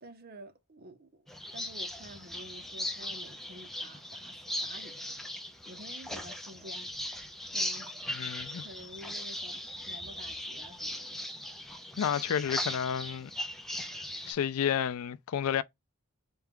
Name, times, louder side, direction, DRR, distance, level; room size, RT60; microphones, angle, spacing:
voice 1, 0.0-5.2 5.7-6.9 7.5-7.9 8.6-11.2, right 1 dB, 45° right, 0.8 m, -50 dB
sound 1, 1.3-14.3, left 1 dB, ahead, 0.5 m, -38 dB
voice 2, 8.1-8.6 12.0-13.3 14.3-15.6, left 8 dB, 75° left, 0.4 m, -31 dB
4.4 x 2.3 x 3.6 m
head